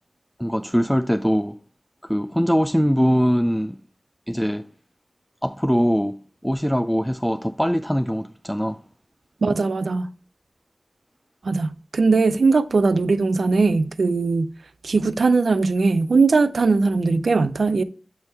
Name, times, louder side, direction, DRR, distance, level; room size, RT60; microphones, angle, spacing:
voice 1, 0.4-1.6 2.0-3.8 4.3-4.6 5.4-8.8, equal, 5° left, 0.4 m, -22 dB
voice 2, 9.4-10.1 11.4-14.5 14.8-17.8, right 4 dB, 85° right, 0.4 m, -20 dB
8.0 x 3.5 x 4.2 m
cardioid pair, 45°, 0 cm